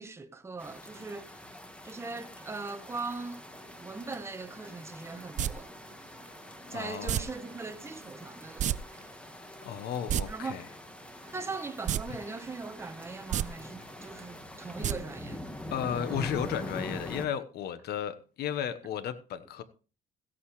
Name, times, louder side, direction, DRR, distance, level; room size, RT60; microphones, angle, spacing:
voice 1, 0.0-1.5 1.8-3.5 3.8-5.7 6.7-8.8 10.2-10.6 11.3-15.4, right 3 dB, 15° right, 1.0 m, -40 dB
sound 1, 0.6-17.3, left 1 dB, 5° left, 1.5 m, -44 dB
sound 2, 3.4-17.0, equal, 25° left, 5.1 m, -57 dB
sound 3, 5.4-5.5 7.1-7.2 8.6-8.8 9.0-9.1 9.9-10.2 11.8-12.0 12.4-12.5 13.2-13.4 14.8-14.9 15.3-15.4, right 11 dB, 45° right, 0.4 m, -28 dB
voice 2, 6.7-7.3 9.6-10.6 15.7-19.6, left 9 dB, 70° left, 1.2 m, -34 dB
16.5 x 8.7 x 3.2 m
cardioid pair, 110°, 17 cm